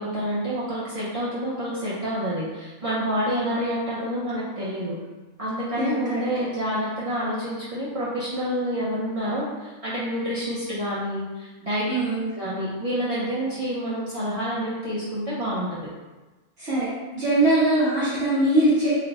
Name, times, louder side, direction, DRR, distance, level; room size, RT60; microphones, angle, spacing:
voice 1, 0.0-4.9 5.4-11.9 12.4-15.8, equal, 35° right, -9 dB, 0.6 m, -28 dB
voice 2, 5.8-6.2 11.9-12.3 16.6-18.9, right 1 dB, 55° right, -11 dB, 1.2 m, -22 dB
4.0 x 2.2 x 3.9 m, 1.2 s
omnidirectional pair, 1.3 m